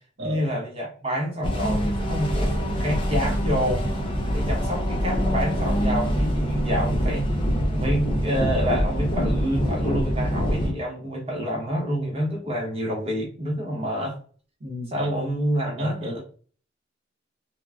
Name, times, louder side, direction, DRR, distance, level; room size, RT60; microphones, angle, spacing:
voice 1, 0.2-3.9 4.3-7.3 7.7-14.2 14.9-16.2, equal, 30° right, -2 dB, 0.9 m, -28 dB
sound 1, 1.4-10.7, equal, 30° left, 0.6 m, -24 dB
voice 2, 14.6-15.1 15.8-16.2, equal, 70° right, 1 dB, 1.0 m, -34 dB
3.2 x 2.3 x 2.4 m, 0.40 s
head